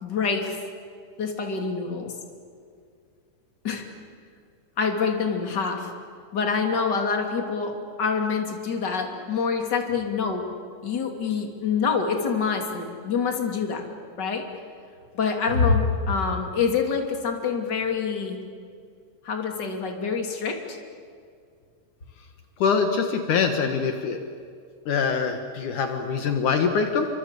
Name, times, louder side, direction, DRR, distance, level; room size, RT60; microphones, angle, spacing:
voice 1, 0.0-0.6 1.2-2.1 3.6-3.9 4.8-5.9 6.3-7.7 8.0-10.4 10.8-13.8 14.2-14.4 15.1-18.4 19.2-20.8, left 5 dB, 35° left, 3 dB, 3.1 m, -26 dB
voice 2, 22.6-24.2 24.9-27.1, left 5 dB, 70° left, 5 dB, 2.8 m, -24 dB
28.5 x 25.5 x 8.3 m, 2.2 s
omnidirectional pair, 3.8 m